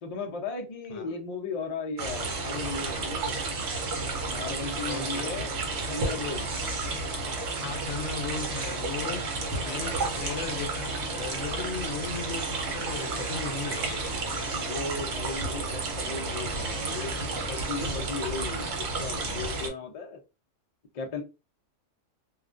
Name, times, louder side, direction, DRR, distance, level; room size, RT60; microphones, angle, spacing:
voice 1, 0.0-3.5 4.2-5.5 5.8-6.5 9.6-10.0 11.5-11.7 14.5-20.2 20.9-21.2, left 4 dB, 45° left, 0.5 m, -36 dB
sound 1, 2.0-19.7, right 3 dB, 65° right, 0.9 m, -32 dB
voice 2, 4.8-5.3 7.6-9.2 9.6-14.6, left 5 dB, 70° left, 1.0 m, -37 dB
2.4 x 2.2 x 2.4 m
omnidirectional pair, 1.3 m